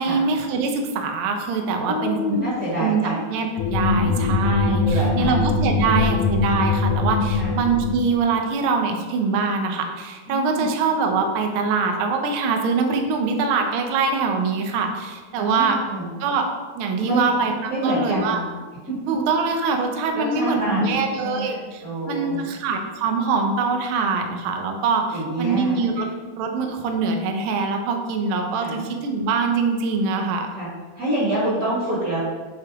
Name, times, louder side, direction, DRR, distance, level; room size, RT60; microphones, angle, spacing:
voice 1, 0.0-2.4 2.8-3.0 3.3-15.8 16.2-16.5 16.8-18.4 19.1-26.1 26.4-30.5, right 4 dB, 75° right, 4 dB, 1.2 m, -23 dB
voice 2, 1.7-3.3 4.0-4.3 4.8-5.4 5.8-6.3 7.3-7.5 10.3-10.7 15.3-16.1 17.0-17.3 17.7-18.4 18.9-19.1 20.1-22.5 25.1-26.0 28.6-28.8 30.5-30.7 31.0-32.2, right 1 dB, 35° right, -8 dB, 2.2 m, -27 dB
sound 1, 3.6-8.2, left 4 dB, 85° left, 1.3 m, -22 dB
8.2 x 4.8 x 3.6 m, 1.4 s
omnidirectional pair, 3.3 m